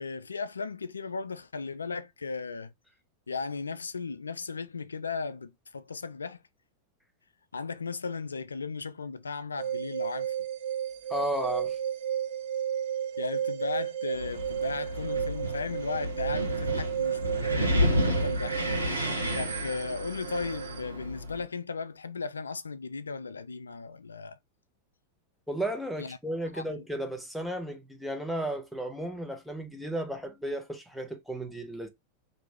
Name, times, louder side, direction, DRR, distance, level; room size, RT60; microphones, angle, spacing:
voice 1, 0.0-2.7 3.3-6.4 7.5-10.3 13.2-18.6 19.3-24.4 26.0-26.2 26.6-26.7, left 4 dB, 75° left, 0.3 m, -36 dB
sound 1, 9.6-20.8, right 9 dB, 50° right, 0.8 m, -33 dB
voice 2, 11.1-11.8 25.5-31.9, right 1 dB, ahead, 0.7 m, -34 dB
Wind, 14.1-21.4, equal, 80° right, 0.9 m, -31 dB
2.9 x 2.7 x 3.3 m
figure-of-eight pair, 90°, 0 cm